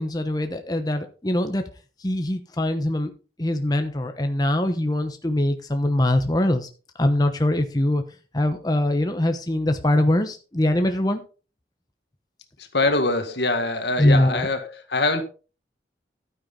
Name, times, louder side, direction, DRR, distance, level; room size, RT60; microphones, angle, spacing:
voice 1, 0.0-1.6 2.0-3.1 3.4-6.7 7.0-8.0 8.3-11.2 14.0-14.5, left 1 dB, 20° left, 1.0 m, -22 dB
voice 2, 12.6-15.2, left 2 dB, 75° left, 1.9 m, -24 dB
12.0 x 9.7 x 3.9 m
head